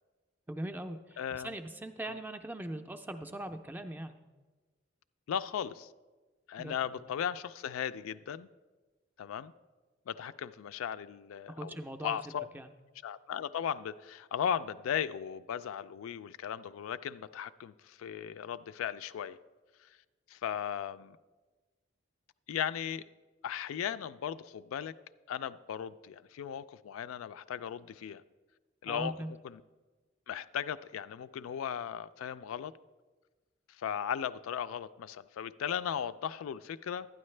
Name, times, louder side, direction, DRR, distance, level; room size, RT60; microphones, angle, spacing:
voice 1, 0.5-4.2 6.6-6.7 11.5-12.2 12.5-12.7 28.9-29.3, right 1 dB, 10° right, 8 dB, 0.4 m, -40 dB
voice 2, 1.2-1.5 2.1-2.2 5.3-5.9 6.5-8.5 9.2-9.5 10.1-11.8 12.0-12.5 13.0-19.4 19.8-19.9 20.3-21.2 22.5-23.0 23.4-24.9 25.3-28.2 28.8-29.6 30.3-32.7 33.8-37.1, left 8 dB, 85° left, 13 dB, 0.3 m, -37 dB
12.0 x 9.4 x 3.2 m, 1.3 s
head